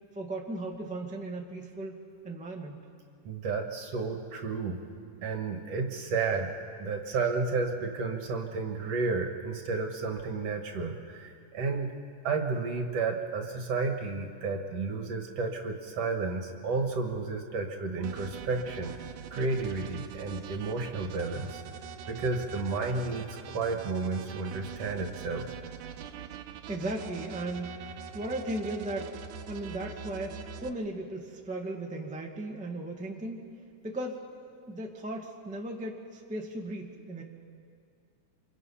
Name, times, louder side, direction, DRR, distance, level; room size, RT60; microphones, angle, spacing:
voice 1, 0.1-2.0 2.2-2.8 26.3-27.9 28.1-29.2 29.5-33.4 33.8-34.2 34.7-37.2, right 1 dB, 5° right, 0 dB, 0.8 m, -36 dB
voice 2, 3.2-4.8 5.2-6.5 6.8-11.9 12.2-18.9 19.3-21.6 22.1-25.5, right 4 dB, 55° right, 4 dB, 2.4 m, -32 dB
sound 1, 18.0-30.7, right 8 dB, 75° right, 2.2 m, -43 dB
27.0 x 26.0 x 5.7 m, 2.3 s
omnidirectional pair, 3.7 m